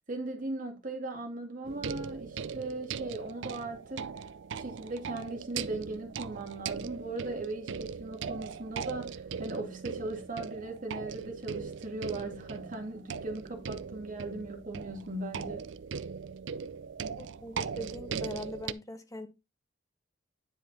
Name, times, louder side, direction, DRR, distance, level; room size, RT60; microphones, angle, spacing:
voice 1, 0.1-4.1 4.5-15.6, right 2 dB, 45° right, 2.1 m, -38 dB
sound 1, 1.6-18.7, right 6 dB, 65° right, 0.5 m, -39 dB
voice 2, 17.1-19.3, left 1 dB, 15° left, 1.2 m, -41 dB
9.9 x 5.0 x 4.1 m
head